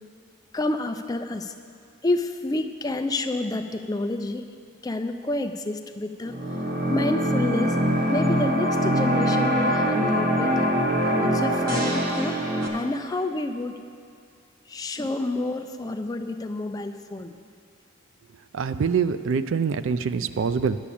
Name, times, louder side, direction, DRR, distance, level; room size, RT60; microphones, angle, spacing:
voice 1, 0.5-1.5 2.0-4.5 4.8-6.4 6.9-7.8 8.1-10.7 11.1-12.4 12.7-13.8 14.7-17.4, left 2 dB, 15° left, 6 dB, 0.4 m, -29 dB
sound 1, 6.3-12.7, equal, 40° right, 1.3 m, -23 dB
voice 2, 18.5-20.8, right 6 dB, 60° right, 12 dB, 0.4 m, -25 dB
9.9 x 6.1 x 8.4 m, 2.4 s
head